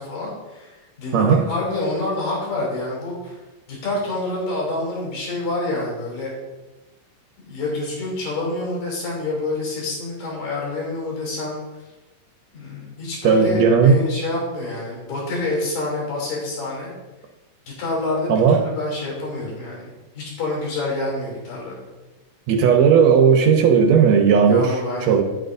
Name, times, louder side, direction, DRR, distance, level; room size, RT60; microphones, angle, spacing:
voice 1, 0.0-3.4 3.7-6.3 7.5-11.6 12.5-16.9 17.8-21.9 24.4-25.2, left 2 dB, 70° left, -4 dB, 4.6 m, -27 dB
voice 2, 13.2-14.0 18.3-18.7 22.5-24.8 25.0-25.2, right 6 dB, 80° right, 4 dB, 1.6 m, -15 dB
11.0 x 9.1 x 2.6 m, 1.1 s
omnidirectional pair, 4.0 m